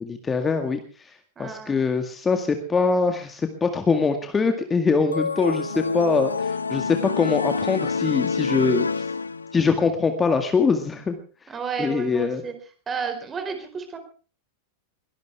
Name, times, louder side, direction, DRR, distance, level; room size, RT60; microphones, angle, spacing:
voice 1, 0.2-1.1 1.4-8.9 9.5-11.2 11.8-12.4, left 4 dB, 15° left, 6 dB, 2.0 m, -23 dB
voice 2, 1.4-1.8 11.5-12.5 12.9-14.0, right 6 dB, 20° right, 8 dB, 4.6 m, -32 dB
sound 1, 5.1-9.8, left 4 dB, 75° left, 0.9 m, -27 dB
22.5 x 18.0 x 3.5 m, 0.39 s
figure-of-eight pair, 90°, 0 cm